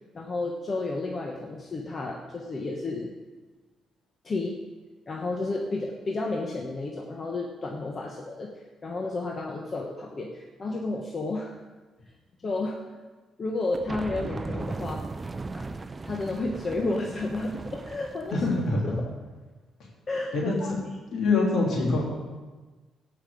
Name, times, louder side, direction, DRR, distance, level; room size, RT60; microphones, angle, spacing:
voice 1, 0.1-3.1 4.2-4.6 5.1-8.5 8.8-11.6 12.4-13.0 13.4-15.0 15.5-15.7 16.0-18.4 18.8-18.9 20.1-20.7, left 2 dB, 40° left, 0 dB, 1.1 m, -31 dB
sound 1, 13.7-18.7, right 3 dB, 25° right, 0.5 m, -37 dB
voice 2, 18.3-19.0 20.3-20.8 21.1-22.0, left 3 dB, 65° left, -3 dB, 3.4 m, -25 dB
17.0 x 5.7 x 5.1 m, 1.3 s
cardioid pair, 90°, 0 cm